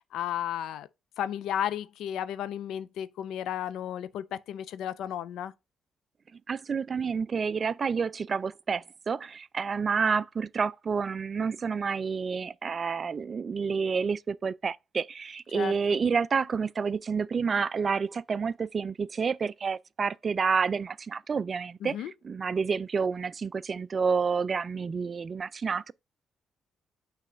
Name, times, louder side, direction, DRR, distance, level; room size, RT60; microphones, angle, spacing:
voice 1, 0.1-0.9 1.2-5.5 15.5-15.7 21.8-22.1, left 10 dB, 80° left, 0.4 m, -33 dB
voice 2, 6.5-22.0 22.2-25.9, right 5 dB, 45° right, 0.3 m, -29 dB
6.6 x 3.2 x 4.9 m
cardioid pair, 75°, 0 cm